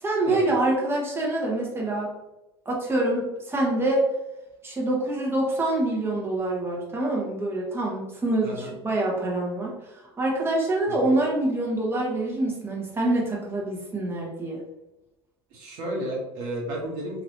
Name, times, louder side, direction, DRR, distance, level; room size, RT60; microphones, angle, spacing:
voice 1, 0.0-2.1 2.6-4.0 4.6-9.8 10.2-14.6, right 2 dB, 15° right, -3 dB, 1.1 m, -26 dB
voice 2, 15.5-17.2, right 1 dB, 65° right, -3 dB, 1.1 m, -33 dB
3.1 x 2.9 x 2.8 m, 0.96 s
hypercardioid pair, 75°, 14 cm